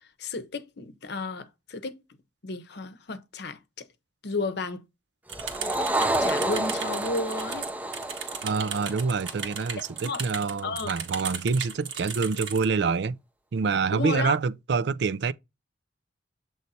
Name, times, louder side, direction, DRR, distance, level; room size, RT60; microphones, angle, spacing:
voice 1, 0.2-2.0 2.4-3.9 4.2-4.8 6.2-7.7 10.0-10.2 10.6-10.9 13.9-14.4, left 3 dB, 60° left, 0.8 m, -32 dB
sound 1, 5.3-9.9, right 1 dB, 10° right, 0.5 m, -30 dB
sound 2, 5.3-12.7, right 7 dB, 85° right, 1.6 m, -36 dB
voice 2, 8.4-13.2 13.5-15.3, right 5 dB, 65° right, 0.4 m, -26 dB
7.8 x 3.2 x 4.1 m
head